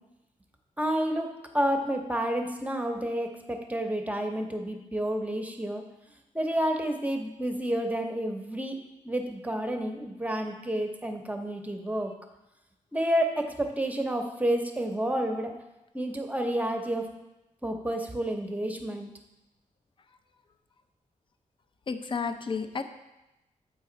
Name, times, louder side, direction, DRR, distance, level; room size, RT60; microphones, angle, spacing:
voice 1, 0.8-5.8 6.3-12.1 12.9-15.5 15.9-17.1 17.6-19.1, right 1 dB, 10° right, 3 dB, 0.8 m, -30 dB
voice 2, 21.9-22.8, left 5 dB, 40° left, 9 dB, 0.5 m, -31 dB
7.1 x 5.0 x 3.9 m, 0.96 s
cardioid pair, 85°, 14 cm